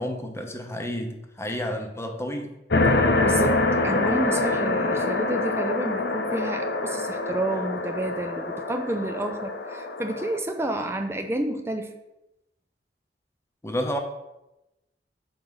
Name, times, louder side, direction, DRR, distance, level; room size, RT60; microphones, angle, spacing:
voice 1, 0.0-2.5 13.6-14.0, equal, 15° left, 3 dB, 0.9 m, -30 dB
sound 1, 2.7-10.4, left 2 dB, 65° left, 0.8 m, -25 dB
voice 2, 3.2-12.0, right 1 dB, 15° right, 5 dB, 0.5 m, -30 dB
6.4 x 4.6 x 5.5 m, 0.93 s
head